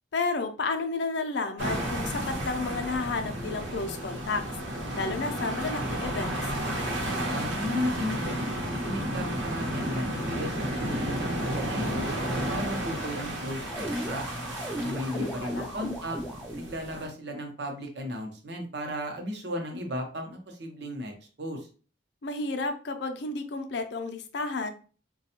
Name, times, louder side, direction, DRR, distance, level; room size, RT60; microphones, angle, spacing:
voice 1, 0.1-4.4 4.9-6.4 15.1-15.7 22.2-24.7, left 3 dB, 65° left, 7 dB, 0.5 m, -31 dB
sound 1, 1.6-17.1, right 1 dB, 85° right, 0.9 m, -32 dB
voice 2, 7.1-8.5 8.8-12.2 12.5-14.2 14.8-16.2 16.6-21.1 21.4-21.7, equal, 60° right, 3 dB, 0.7 m, -35 dB
sound 2, 13.6-16.8, equal, ahead, 0.3 m, -36 dB
4.1 x 2.3 x 2.8 m, 0.38 s
head